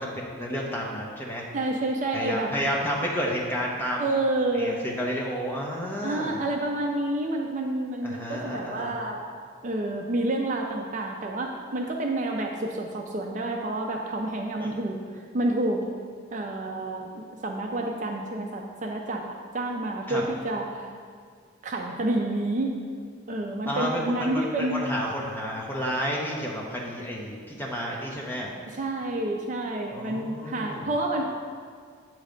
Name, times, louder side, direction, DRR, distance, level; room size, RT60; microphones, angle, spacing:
voice 1, 0.0-1.4 2.1-4.0 4.5-6.4 8.0-8.9 14.6-14.7 20.1-20.2 23.7-28.5 29.9-30.9, equal, 10° left, -3 dB, 0.8 m, -31 dB
voice 2, 1.5-2.5 4.0-4.8 6.0-9.2 9.6-15.0 15.3-15.9 16.3-20.8 21.6-22.8 23.3-24.9 28.7-31.3, right 2 dB, 35° right, 1 dB, 0.4 m, -29 dB
8.1 x 3.2 x 5.1 m, 2.1 s
head